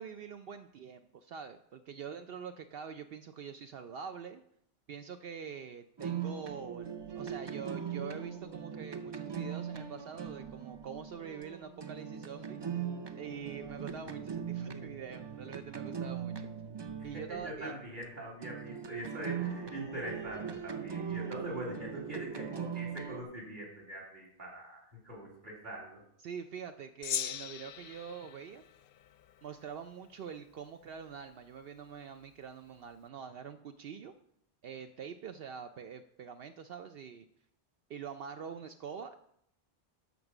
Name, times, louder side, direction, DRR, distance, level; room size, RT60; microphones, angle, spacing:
voice 1, 0.0-4.4 4.9-12.6 13.1-16.5 17.0-17.7 26.2-28.6 29.4-34.1 34.6-37.2 37.9-39.2, right 7 dB, 65° right, 8 dB, 0.8 m, -45 dB
sound 1, 6.0-18.0 18.4-23.2, right 7 dB, 35° right, 0.5 m, -40 dB
voice 2, 17.0-26.0, right 1 dB, 50° right, -2 dB, 3.6 m, -43 dB
Gong, 27.0-29.7, left 9 dB, 65° left, 0.7 m, -40 dB
13.0 x 5.4 x 6.0 m, 0.72 s
omnidirectional pair, 1.1 m